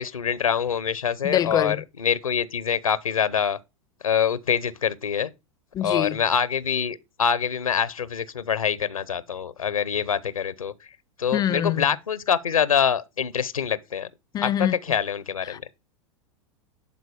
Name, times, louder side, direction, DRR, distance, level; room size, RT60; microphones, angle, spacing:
voice 1, 0.0-3.6 4.0-5.3 5.8-10.7 11.2-14.1 14.4-15.6, left 7 dB, 90° left, 0.7 m, -25 dB
voice 2, 1.2-1.8 5.7-6.2 11.3-11.9 14.3-14.7 15.4-15.8, left 10 dB, 20° left, 0.4 m, -25 dB
11.0 x 4.0 x 4.9 m
hypercardioid pair, 95°, 17 cm